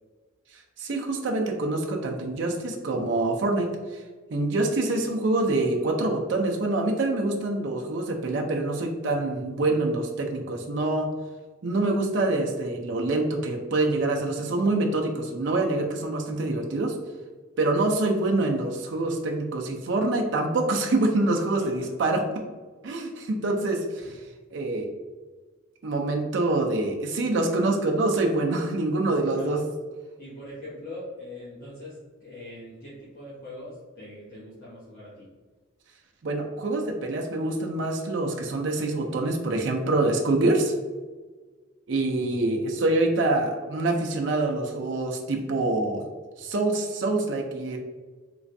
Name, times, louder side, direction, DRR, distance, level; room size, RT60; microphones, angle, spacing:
voice 1, 0.5-4.0 4.3-11.1 11.6-16.9 17.6-22.2 22.8-24.0 24.5-24.9 25.8-29.6 36.2-40.7 41.9-46.0 46.4-47.8, right 2 dB, 60° right, 1 dB, 0.4 m, -25 dB
voice 2, 30.2-35.3, left 1 dB, 50° left, -10 dB, 1.0 m, -42 dB
3.3 x 3.0 x 2.6 m, 1.4 s
head